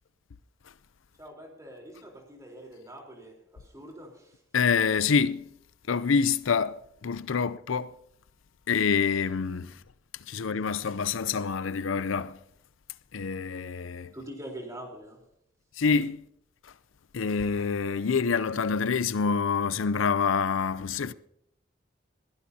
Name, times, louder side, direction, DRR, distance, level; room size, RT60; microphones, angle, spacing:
voice 1, 1.2-4.4 10.4-10.6 14.1-15.2, right 1 dB, 15° right, 3.8 m, -44 dB
voice 2, 4.5-5.5 5.9-8.0 8.7-9.8 10.1-12.4 13.1-14.1 15.8-16.2 16.6-16.7 17.1-21.1, left 5 dB, 85° left, 0.5 m, -27 dB
21.5 x 16.0 x 2.8 m
head